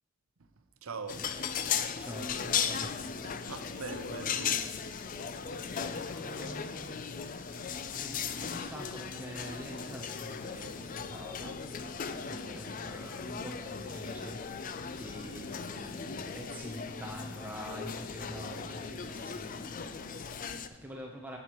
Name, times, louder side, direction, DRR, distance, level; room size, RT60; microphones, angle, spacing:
voice 1, 0.8-1.3 3.2-4.8, right 4 dB, 75° right, 0.7 m, -42 dB
sound 1, 1.1-20.7, left 6 dB, 40° left, 0.4 m, -37 dB
voice 2, 2.0-2.9 5.3-21.4, equal, 10° right, 0.7 m, -46 dB
11.5 x 8.0 x 3.0 m
head